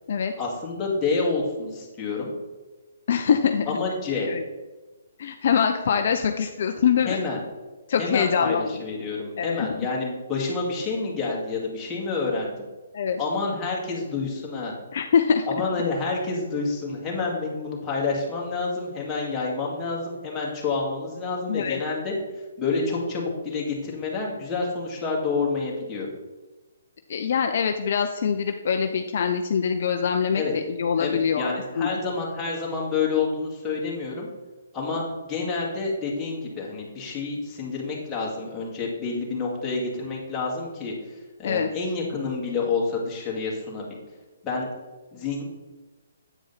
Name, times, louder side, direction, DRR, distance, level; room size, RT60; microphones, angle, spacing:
voice 1, 0.4-2.3 3.7-4.3 7.0-7.4 8.0-12.7 13.2-14.7 15.5-22.1 22.6-26.1 30.3-30.5 31.0-34.3 34.7-35.0 35.3-40.9 41.4-44.0 44.4-44.7 45.1-45.4, left 4 dB, 15° left, -4 dB, 1.9 m, -28 dB
voice 2, 3.1-3.8 4.2-4.4 5.2-7.2 7.9-8.8 9.4-9.7 12.9-13.2 14.9-15.5 21.5-21.8 27.1-32.0 41.4-41.7, left 7 dB, 55° left, 6 dB, 0.5 m, -24 dB
8.7 x 4.9 x 4.1 m, 1.2 s
hypercardioid pair, 150°, 0 cm